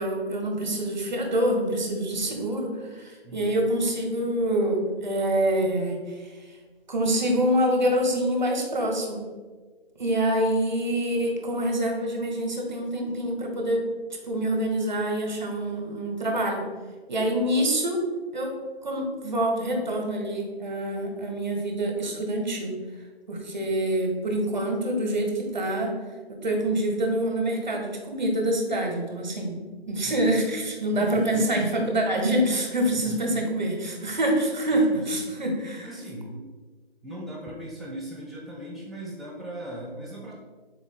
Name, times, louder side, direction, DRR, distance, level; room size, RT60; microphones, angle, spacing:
voice 1, 0.0-6.4 6.9-9.3 10.0-13.9 14.2-16.6 17.1-18.0 18.3-18.5 18.8-22.8 23.3-26.0 26.3-35.9, right 1 dB, 45° right, 2 dB, 0.6 m, -26 dB
voice 2, 3.2-3.6 30.0-30.2 30.9-31.7 32.9-33.3 34.7-35.3 35.8-36.5 37.0-40.3, right 1 dB, ahead, -7 dB, 0.3 m, -39 dB
3.9 x 2.6 x 3.4 m, 1.4 s
figure-of-eight pair, 160°, 32 cm